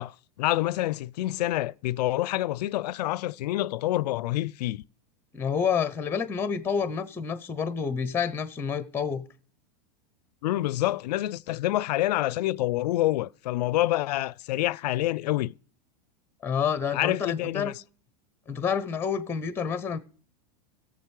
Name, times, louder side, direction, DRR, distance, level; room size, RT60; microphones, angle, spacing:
voice 1, 0.0-4.8 10.4-15.5 16.9-17.7, left 16 dB, 70° left, 0.4 m, -27 dB
voice 2, 5.3-9.2 16.4-17.7 18.5-20.0, left 7 dB, 10° left, 0.6 m, -28 dB
17.5 x 7.0 x 3.2 m
hypercardioid pair, 120°, 21 cm